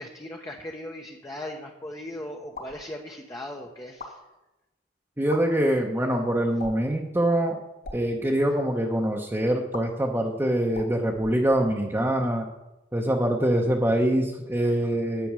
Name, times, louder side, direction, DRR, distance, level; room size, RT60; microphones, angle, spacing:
voice 1, 0.0-4.2, left 1 dB, 15° left, 1 dB, 0.9 m, -38 dB
sound 1, 2.5-2.8 3.8-4.1 5.2-5.4 6.6-6.9 7.7-8.0 9.7-9.8 10.7-11.9, left 3 dB, 55° left, 2.8 m, -41 dB
voice 2, 5.2-7.6 7.9-12.5 12.9-15.3, right 1 dB, 15° right, -1 dB, 0.9 m, -24 dB
10.5 x 7.8 x 6.2 m, 1.0 s
head